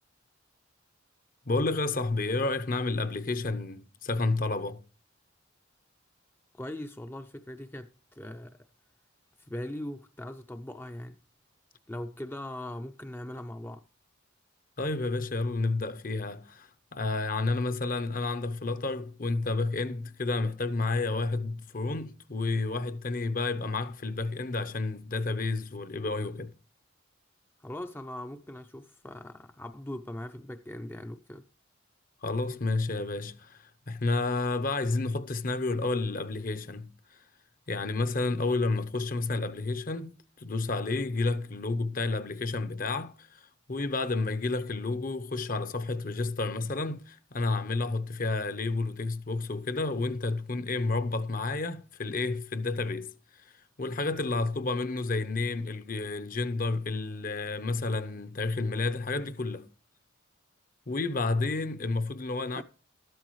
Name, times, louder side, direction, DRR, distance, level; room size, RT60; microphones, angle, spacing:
voice 1, 1.5-4.8 14.8-26.5 32.2-36.9 37.7-43.4 43.7-53.1 53.8-59.7 60.9-62.6, left 3 dB, 45° left, 0.8 m, -30 dB
voice 2, 6.5-8.7 9.5-11.2 11.9-13.8 27.6-31.4 62.5-62.6, left 1 dB, 10° left, 0.5 m, -40 dB
13.5 x 12.5 x 3.1 m
head